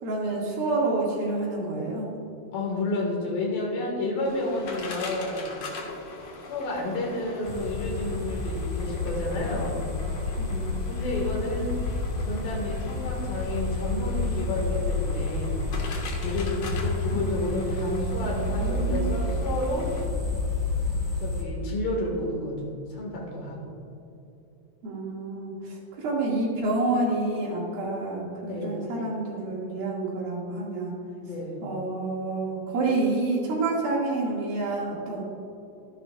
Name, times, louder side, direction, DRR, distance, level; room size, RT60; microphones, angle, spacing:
voice 1, 0.0-2.1 10.4-10.8 17.1-19.2 24.8-30.9 31.6-35.2, right 2 dB, 75° right, -4 dB, 3.7 m, -29 dB
voice 2, 2.5-5.7 6.5-9.8 10.8-11.7 12.2-15.6 16.2-19.9 21.2-23.7 28.4-28.9 31.2-31.6, left 2 dB, 75° left, -2 dB, 3.4 m, -31 dB
sound 1, 4.2-20.1, left 3 dB, 55° left, 2.0 m, -41 dB
sound 2, 7.4-21.4, left 2 dB, 10° left, 1.4 m, -30 dB
13.5 x 10.5 x 2.3 m, 2.9 s
omnidirectional pair, 4.2 m